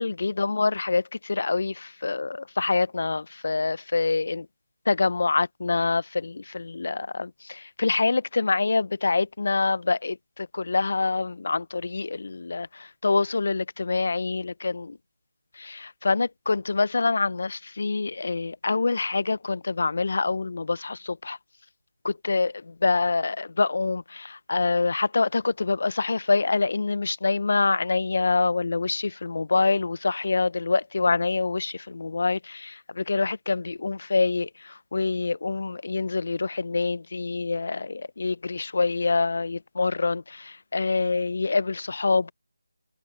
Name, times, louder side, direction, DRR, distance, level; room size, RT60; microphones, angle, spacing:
voice 1, 0.0-4.5 4.8-15.0 15.6-21.4 22.0-42.3, left 3 dB, 55° left, 0.7 m, -26 dB
figure-of-eight pair, 165°, 0 cm